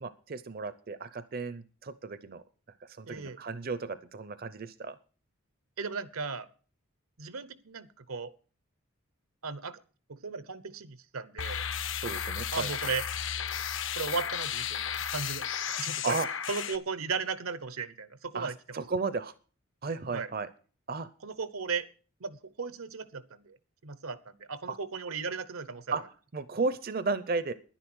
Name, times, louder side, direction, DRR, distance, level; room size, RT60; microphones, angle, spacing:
voice 1, 0.0-2.4 2.8-5.0 12.0-12.7 16.0-16.3 18.3-19.3 19.8-20.5 20.9-21.1 24.7-24.8 25.9-26.0 26.3-27.5, right 4 dB, 45° right, 14 dB, 0.6 m, -34 dB
voice 2, 3.1-3.4 5.8-6.5 7.2-8.3 9.4-9.8 10.1-11.6 12.5-13.0 13.9-14.8 15.1-16.2 16.5-18.8 20.1-20.3 21.2-21.9 22.2-23.6 23.8-25.8, right 4 dB, 80° right, 15 dB, 0.9 m, -36 dB
sound 1, 11.4-16.8, left 8 dB, 60° left, 0.8 m, -34 dB
10.5 x 10.0 x 6.2 m, 0.40 s
head